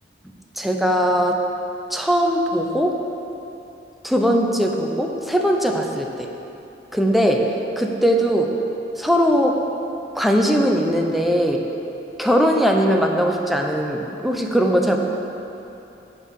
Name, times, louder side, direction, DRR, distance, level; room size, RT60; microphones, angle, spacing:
voice 1, 0.6-1.4 1.9-3.0 4.0-6.3 6.9-8.6 9.0-9.6 10.2-11.6 12.2-15.0, equal, ahead, 1 dB, 0.6 m, -20 dB
8.5 x 4.8 x 7.3 m, 2.9 s
head